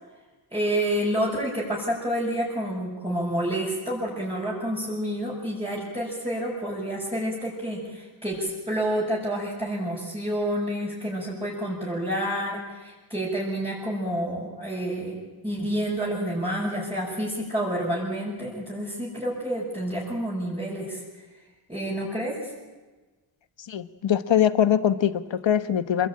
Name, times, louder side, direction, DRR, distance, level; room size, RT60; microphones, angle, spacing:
voice 1, 0.5-21.0 21.7-22.5, right 1 dB, 10° right, -7 dB, 6.8 m, -29 dB
voice 2, 23.7-26.1, left 9 dB, 65° left, 11 dB, 1.4 m, -22 dB
27.5 x 22.0 x 8.9 m, 1.2 s
wide cardioid pair, 160°, 47 cm